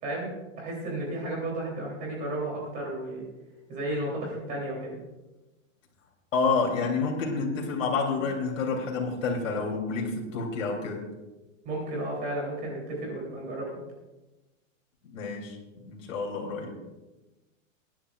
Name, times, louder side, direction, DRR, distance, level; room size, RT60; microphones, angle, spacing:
voice 1, 0.0-3.2 3.7-5.0 11.6-13.8, right 1 dB, 20° right, -2 dB, 3.4 m, -33 dB
voice 2, 6.3-11.1 15.1-16.8, left 4 dB, 65° left, 0 dB, 3.4 m, -29 dB
22.0 x 10.5 x 2.5 m, 1.1 s
supercardioid pair, 175°, 40 cm